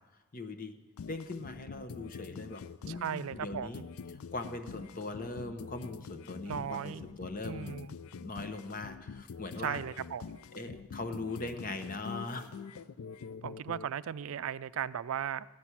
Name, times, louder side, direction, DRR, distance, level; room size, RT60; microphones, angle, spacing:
voice 1, 0.3-0.7 1.0-3.8 4.3-7.7 8.2-9.8 10.5-12.5, left 2 dB, 40° left, 8 dB, 0.9 m, -40 dB
sound 1, 1.0-13.9, left 5 dB, 80° left, 0.4 m, -45 dB
voice 2, 2.9-3.8 6.5-7.0 7.4-7.9 9.6-10.2 13.4-15.5, right 8 dB, 75° right, 15 dB, 0.4 m, -36 dB
14.0 x 6.0 x 9.8 m, 1.2 s
head